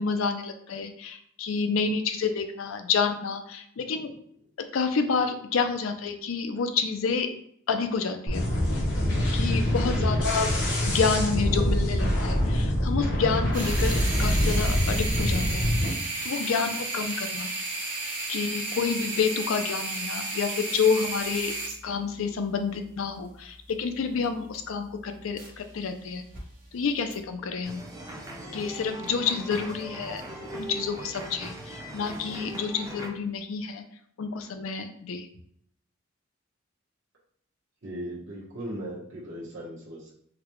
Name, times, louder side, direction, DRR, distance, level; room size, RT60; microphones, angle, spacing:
voice 1, 0.0-4.1 4.7-7.3 7.7-8.4 9.3-10.5 10.8-15.7 16.2-17.5 18.3-21.5 21.8-26.2 26.7-27.8 28.5-33.8 34.2-35.3, left 5 dB, 90° left, 7 dB, 0.4 m, -29 dB
sound 1, 8.3-15.9, equal, 60° left, 0.8 m, -25 dB
sound 2, 13.5-25.8 26.1-26.4 27.1-27.2, right 2 dB, 45° right, 1.1 m, -34 dB
sound 3, 27.6-33.1, right 1 dB, 15° right, 0.5 m, -40 dB
voice 2, 37.8-40.1, right 1 dB, 65° right, -6 dB, 1.0 m, -37 dB
3.9 x 2.2 x 3.0 m, 0.68 s
head